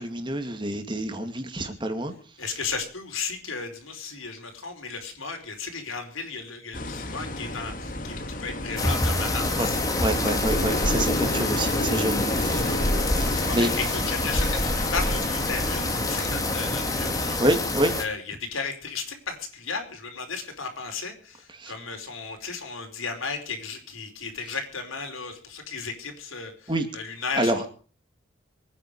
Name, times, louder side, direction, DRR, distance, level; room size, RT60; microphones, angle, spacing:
voice 1, 0.0-2.1 9.6-9.7 10.0-12.8 13.5-13.7 17.4-17.9 21.5-21.7 26.7-26.9 27.4-27.7, right 1 dB, 25° right, 7 dB, 2.3 m, -27 dB
voice 2, 2.4-9.8 13.5-17.4 18.0-27.7, left 4 dB, 90° left, 5 dB, 4.7 m, -35 dB
sound 1, 6.7-17.3, left 1 dB, 40° left, 1.8 m, -31 dB
sound 2, 8.8-18.0, left 2 dB, 15° left, 2.2 m, -27 dB
24.0 x 9.9 x 5.0 m, 0.40 s
head